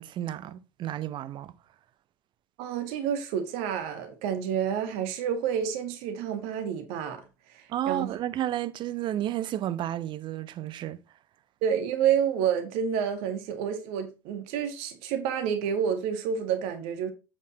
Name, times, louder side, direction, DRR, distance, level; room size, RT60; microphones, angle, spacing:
voice 1, 0.0-1.5 7.7-11.0, right 12 dB, 40° right, 0.8 m, -32 dB
voice 2, 2.6-7.2 7.5-8.1 11.6-17.1, right 8 dB, 55° right, 1.9 m, -29 dB
8.4 x 7.0 x 2.8 m
figure-of-eight pair, 70°, 12 cm